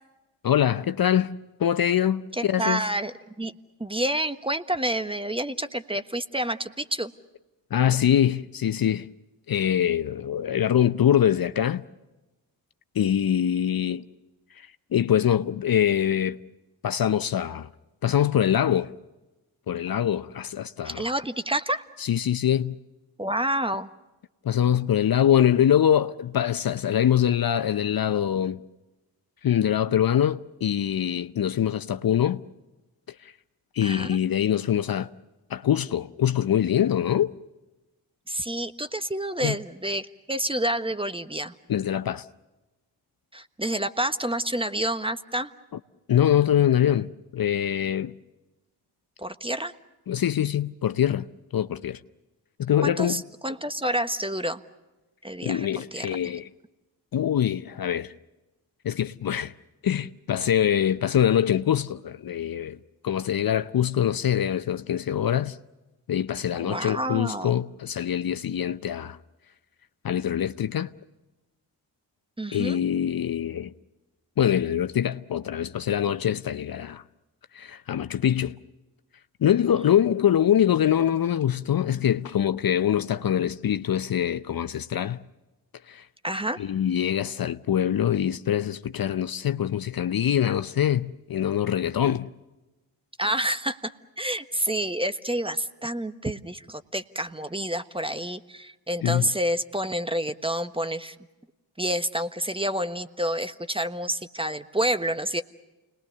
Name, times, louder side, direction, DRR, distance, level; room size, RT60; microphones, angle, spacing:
voice 1, 0.4-2.8 7.7-9.1 9.5-11.8 12.9-14.1 14.6-16.4 16.8-17.7 18.0-18.9 19.7-21.1 22.0-22.8 24.4-28.6 29.4-32.4 33.2-33.3 33.7-35.1 35.5-37.3 39.4-39.5 41.7-42.3 46.1-48.1 50.1-51.3 51.5-52.0 52.6-53.2 55.4-56.5 57.1-58.1 58.8-59.5 59.8-62.8 63.0-65.6 66.1-69.2 70.0-70.9 72.5-73.7 74.4-77.0 77.5-78.6 79.4-85.2 85.9-86.1 86.6-92.3 99.0-99.3, left 10 dB, 45° left, 0.8 m, -24 dB
voice 2, 2.3-3.5 3.8-7.1 20.8-21.8 23.2-23.9 33.8-34.2 38.3-41.5 43.3-45.5 49.2-49.7 52.8-54.6 55.2-56.2 66.6-67.6 72.4-72.8 79.7-79.9 86.2-86.6 93.2-101.2 101.8-105.4, right 1 dB, 10° right, 1.3 m, -29 dB
29.5 x 20.5 x 6.8 m
hypercardioid pair, 40°, 48 cm